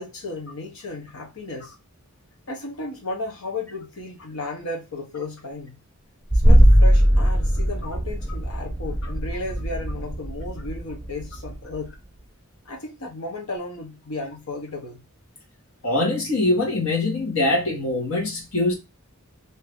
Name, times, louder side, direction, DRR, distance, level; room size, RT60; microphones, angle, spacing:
voice 1, 0.0-1.7 2.5-5.8 6.3-11.9 12.6-15.0, left 2 dB, 90° left, 0.9 m, -34 dB
sound 1, 6.3-11.9, equal, ahead, 0.7 m, -19 dB
voice 2, 15.8-18.7, left 2 dB, 75° left, 1.5 m, -23 dB
2.8 x 2.7 x 3.4 m
head